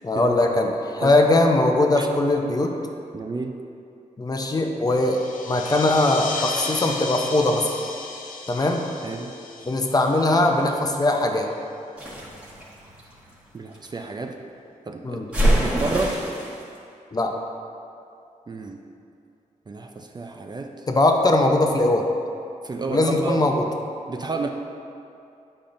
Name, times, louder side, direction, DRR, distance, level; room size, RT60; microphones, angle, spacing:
voice 1, 0.0-2.7 4.2-7.7 8.5-8.8 9.7-11.5 15.0-15.3 17.1-17.3 20.9-22.1 22.9-23.5, left 2 dB, 30° left, 2 dB, 0.6 m, -20 dB
voice 2, 3.1-3.6 9.0-9.3 13.5-14.4 14.9-15.2 15.6-16.2 18.5-18.8 19.7-20.9 22.6-23.5 24.1-24.5, right 3 dB, 30° right, 3 dB, 0.4 m, -30 dB
sound 1, 4.9-11.0, left 3 dB, 80° left, 0.6 m, -34 dB
sound 2, 12.0-13.9 15.3-16.6, right 1 dB, 10° right, 1.4 m, -24 dB
8.5 x 5.4 x 2.5 m, 2.6 s
cardioid pair, 90°, 14 cm